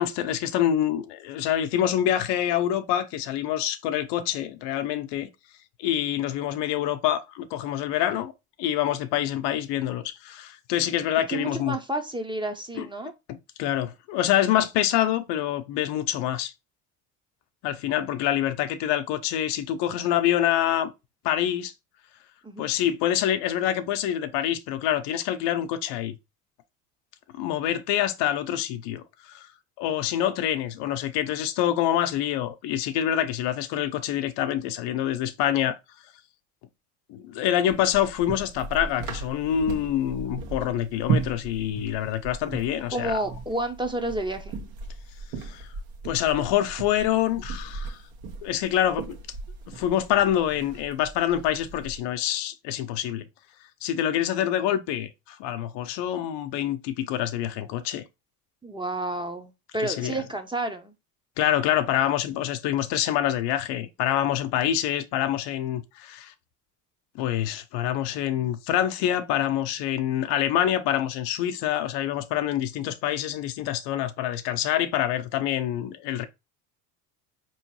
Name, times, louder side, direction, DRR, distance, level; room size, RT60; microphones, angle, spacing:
voice 1, 0.0-5.3 5.8-8.3 8.6-11.8 12.8-12.9 13.3-16.5 17.6-20.9 21.2-21.7 22.6-26.2 27.3-29.5 29.8-35.8 37.1-43.1 45.4-45.7 46.0-48.0 48.4-49.2 49.8-53.2 53.8-58.0 59.8-60.2 61.4-66.3 67.2-76.3, left 11 dB, 60° left, 0.7 m, -26 dB
voice 2, 11.3-13.1 22.4-22.7 42.9-44.6 58.6-60.9, right 1 dB, 10° right, 0.7 m, -30 dB
sound 1, 37.7-52.0, right 5 dB, 65° right, 1.3 m, -36 dB
4.4 x 3.1 x 2.9 m
hypercardioid pair, 70°, 46 cm